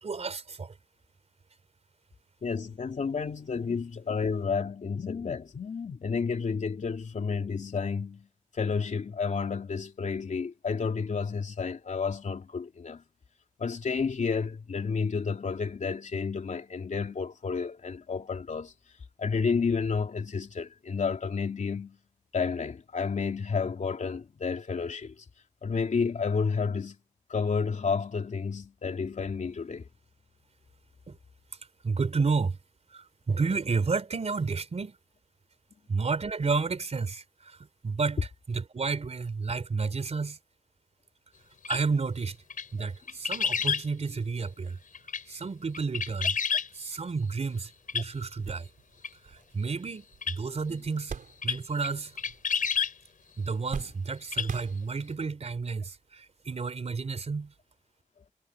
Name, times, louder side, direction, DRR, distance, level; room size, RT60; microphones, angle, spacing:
voice 1, 0.0-0.7 31.1-31.2 31.8-32.6 32.9-35.0 35.9-37.6 37.8-40.4 41.7-42.4 42.7-44.8 45.3-46.4 46.7-48.7 49.3-51.2 51.4-52.1 53.4-57.5, right 4 dB, 50° right, 4.0 m, -31 dB
voice 2, 2.4-8.3 8.5-13.0 13.6-18.7 19.2-22.0 22.3-25.2 25.6-27.0 27.3-29.9, left 5 dB, 65° left, 3.4 m, -31 dB
sound 1, 41.6-41.8 42.5-42.7 43.1-43.8 44.9-45.2 45.7-46.7 47.9-48.0 49.0-49.1 50.2-50.4 51.4-51.6 51.8-51.9 52.2-52.9 54.2-54.5 54.8-54.9, left 6 dB, 80° left, 6.4 m, -29 dB
sound 2, 47.6-47.7 48.1-51.9 52.2-52.9 53.2-55.3 56.0-56.1 57.4-57.6, right 6 dB, 85° right, 4.4 m, -43 dB
wide cardioid pair, 125°, 14 cm